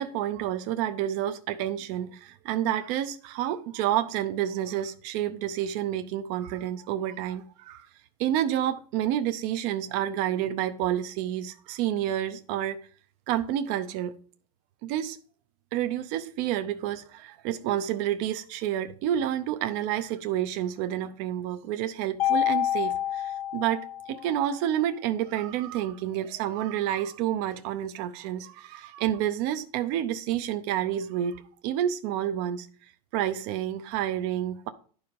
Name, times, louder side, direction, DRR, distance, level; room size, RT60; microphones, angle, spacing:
voice 1, 0.0-7.9 8.2-12.8 13.3-14.2 14.8-15.2 15.7-32.7 33.1-34.7, right 11 dB, 40° right, 0.6 m, -29 dB
Mallet percussion, 22.2-24.4, left 11 dB, 90° left, 0.9 m, -28 dB
10.5 x 4.8 x 5.2 m
supercardioid pair, 165°, 19 cm